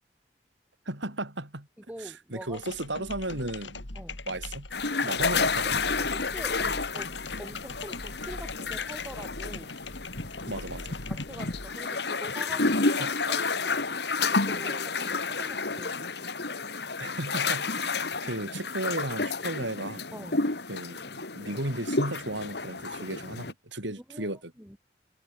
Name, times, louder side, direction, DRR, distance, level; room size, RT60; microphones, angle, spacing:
voice 1, 0.9-1.7 2.3-3.8 4.3-4.7 5.0-5.9 10.5-11.0 13.0-13.3 17.0-20.0 20.7-24.5, right 1 dB, 85° right, 6.0 m, -35 dB
voice 2, 1.8-2.7 4.0-4.2 6.0-9.8 11.1-13.9 14.3-16.1 20.1-20.5 23.9-24.8, equal, 10° right, 5.0 m, -45 dB
sound 1, 2.5-11.8, left 3 dB, 90° left, 4.0 m, -41 dB
sound 2, 4.7-23.5, left 4 dB, 65° left, 2.2 m, -30 dB
head